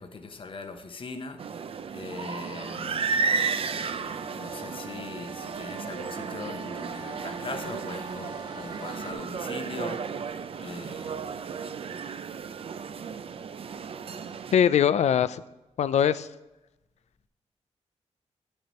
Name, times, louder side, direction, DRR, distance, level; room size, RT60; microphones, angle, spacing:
voice 1, 0.0-3.3 3.6-11.3, left 3 dB, 45° left, 1.0 m, -41 dB
sound 1, 1.4-14.5, right 5 dB, 50° right, 0.5 m, -33 dB
sound 2, 2.7-9.1, right 1 dB, 35° right, 1.1 m, -45 dB
voice 2, 14.5-15.4 15.8-16.3, left 9 dB, 70° left, 0.4 m, -22 dB
9.3 x 6.6 x 4.2 m
cardioid pair, 100°, 12 cm